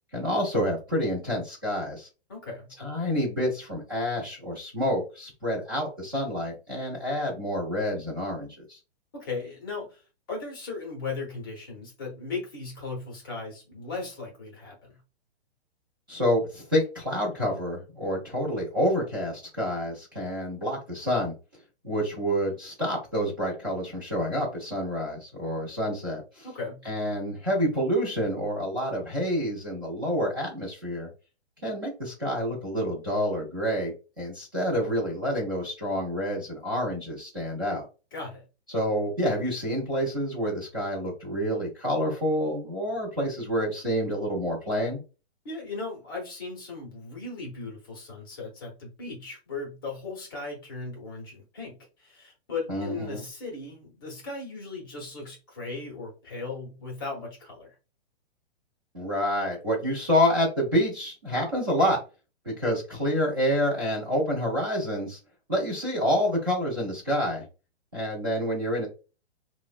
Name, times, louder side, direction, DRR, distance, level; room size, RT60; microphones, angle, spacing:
voice 1, 0.1-2.1 2.8-8.8 16.1-21.3 21.8-26.5 26.8-31.1 31.6-37.9 38.7-45.0 52.7-53.2 58.9-62.0 62.4-65.2 65.5-67.4 67.9-68.9, equal, 20° right, -7 dB, 0.4 m, -28 dB
voice 2, 2.3-2.7 9.1-10.0 10.3-15.0 26.4-26.8 38.1-38.4 45.4-57.8, left 3 dB, 20° left, -2 dB, 0.6 m, -37 dB
3.4 x 2.0 x 2.3 m, 0.33 s
hypercardioid pair, 175°, 33 cm